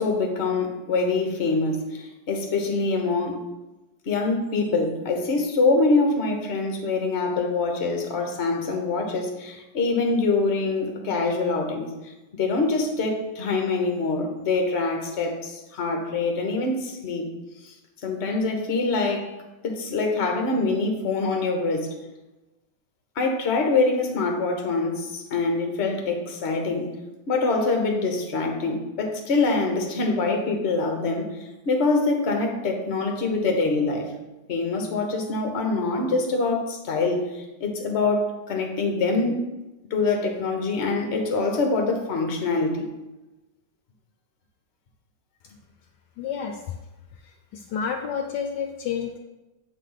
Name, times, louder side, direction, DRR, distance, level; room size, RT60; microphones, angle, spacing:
voice 1, 0.0-3.4 4.1-11.9 12.3-17.3 17.6-17.7 18.0-19.3 19.6-21.9 23.2-26.9 27.3-31.4 31.7-34.1 34.5-39.4 39.9-42.9, left 3 dB, 45° left, 3 dB, 1.1 m, -24 dB
voice 2, 46.2-46.8 47.1-49.2, left 7 dB, 75° left, 3 dB, 1.1 m, -30 dB
7.7 x 3.3 x 5.6 m, 1.0 s
omnidirectional pair, 2.0 m